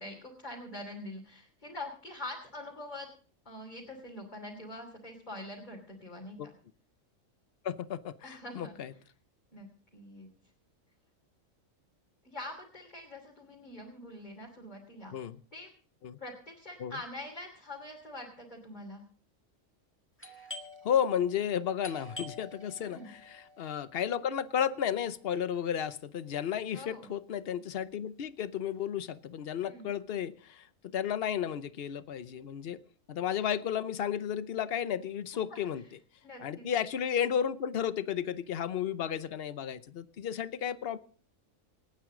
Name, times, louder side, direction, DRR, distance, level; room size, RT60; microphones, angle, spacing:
voice 1, 0.0-3.1 3.4-6.5 8.2-8.8 9.5-9.7 9.9-10.3 12.2-15.1 15.5-15.7 16.2-19.0 22.8-23.1 26.7-27.1 29.7-29.9 35.3-35.6 36.2-36.7, left 1 dB, 35° left, -2 dB, 3.1 m, -44 dB
voice 2, 7.6-8.9 15.1-15.4 16.0-16.2 16.8-17.0 20.8-32.8 33.1-35.8 36.4-41.0, left 9 dB, 55° left, 14 dB, 0.9 m, -33 dB
Doorbell, 20.2-25.6, left 2 dB, 10° left, 1.7 m, -49 dB
27.5 x 9.3 x 3.8 m, 0.43 s
omnidirectional pair, 1.3 m